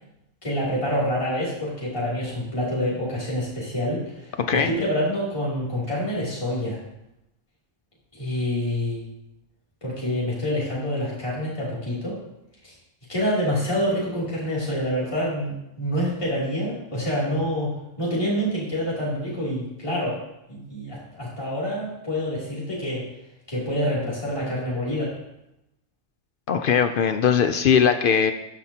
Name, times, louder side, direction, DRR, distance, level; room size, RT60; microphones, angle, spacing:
voice 1, 0.4-6.8 8.1-9.0 9.8-12.2 12.6-12.7 13.1-17.7 18.0-20.2 20.5-23.0 23.5-25.1, equal, 25° left, -8 dB, 2.8 m, -27 dB
voice 2, 4.4-4.7 26.5-28.3, left 7 dB, 65° left, 8 dB, 0.5 m, -20 dB
13.5 x 5.9 x 2.8 m, 0.87 s
omnidirectional pair, 1.3 m